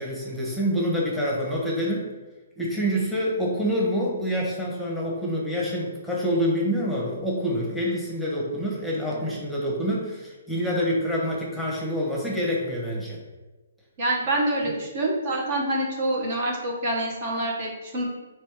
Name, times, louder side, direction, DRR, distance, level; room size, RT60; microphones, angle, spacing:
voice 1, 0.0-2.1 2.6-13.2 14.7-14.8, equal, ahead, -5 dB, 1.1 m, -26 dB
voice 2, 14.0-18.1, right 1 dB, 45° right, -2 dB, 1.1 m, -26 dB
3.3 x 3.2 x 4.7 m, 1.2 s
hypercardioid pair, 140°, 0 cm